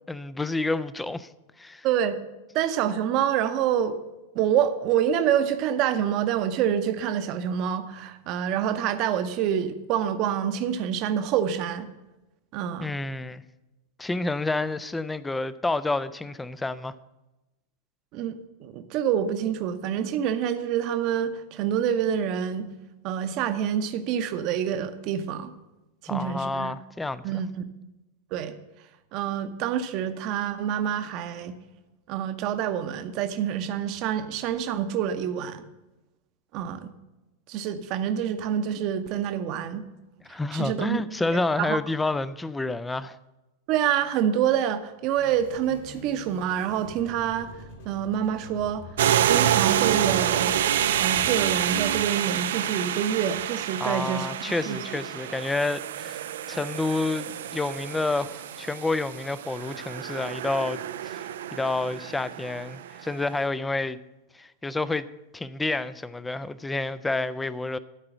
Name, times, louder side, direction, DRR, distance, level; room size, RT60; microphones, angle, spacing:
voice 1, 0.1-1.3 1.6-1.9 12.8-13.4 14.0-16.9 26.1-27.2 40.3-43.2 53.8-61.2 61.5-64.0 64.3-65.1 65.3-67.8, left 2 dB, 10° left, 0.4 m, -29 dB
voice 2, 1.8-2.2 2.5-4.0 4.3-11.9 12.5-12.9 18.1-22.7 23.0-25.5 26.1-26.7 27.2-27.6 28.3-28.5 29.1-31.5 32.1-35.6 36.5-36.9 37.5-39.8 40.3-41.0 41.3-41.8 43.7-47.5 47.8-48.9 49.2-50.6 51.0-54.3 54.7-55.0, right 9 dB, 40° right, 0.8 m, -27 dB
sound 1, 45.2-52.0, left 3 dB, 60° left, 2.6 m, -44 dB
sound 2, 49.0-63.1, right 10 dB, 60° right, 0.4 m, -28 dB
12.5 x 4.9 x 7.7 m
figure-of-eight pair, 90°, 0 cm